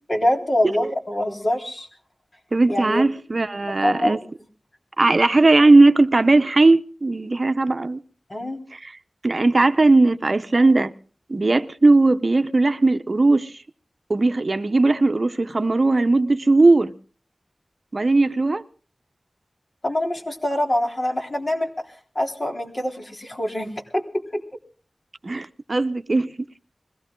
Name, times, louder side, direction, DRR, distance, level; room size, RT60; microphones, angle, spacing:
voice 1, 0.1-1.9 2.7-3.0 3.8-4.2 8.3-8.6 19.8-21.7 22.2-24.4, left 1 dB, 50° left, 3.7 m, -24 dB
voice 2, 2.5-4.2 5.0-8.0 8.7-8.9 9.2-10.9 11.3-13.5 14.1-16.9 17.9-18.6 25.2-26.3, right 2 dB, 55° right, 0.7 m, -18 dB
21.5 x 16.5 x 3.8 m
wide cardioid pair, 55°, 0 cm